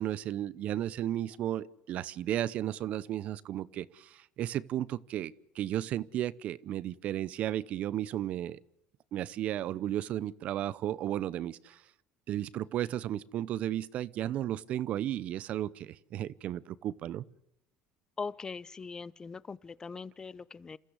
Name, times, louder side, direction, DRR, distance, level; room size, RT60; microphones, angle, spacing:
voice 1, 0.0-8.6 9.1-11.8 12.3-17.2, right 12 dB, 55° right, 0.8 m, -34 dB
voice 2, 18.2-20.8, left 4 dB, 25° left, 0.8 m, -41 dB
28.0 x 14.5 x 8.2 m
supercardioid pair, 85°, 3 cm